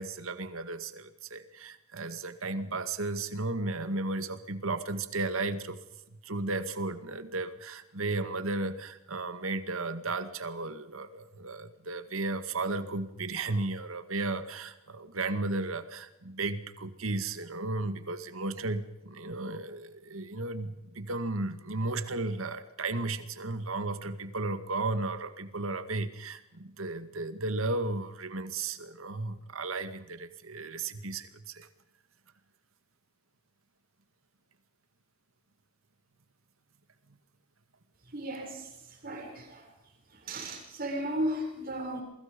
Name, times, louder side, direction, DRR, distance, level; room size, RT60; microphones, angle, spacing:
voice 1, 0.0-5.8 6.1-31.7, right 2 dB, 80° right, 10 dB, 2.0 m, -34 dB
voice 2, 38.1-38.7 39.0-39.6 40.2-42.0, right 1 dB, 45° right, 1 dB, 7.1 m, -34 dB
28.5 x 23.5 x 5.3 m, 0.89 s
head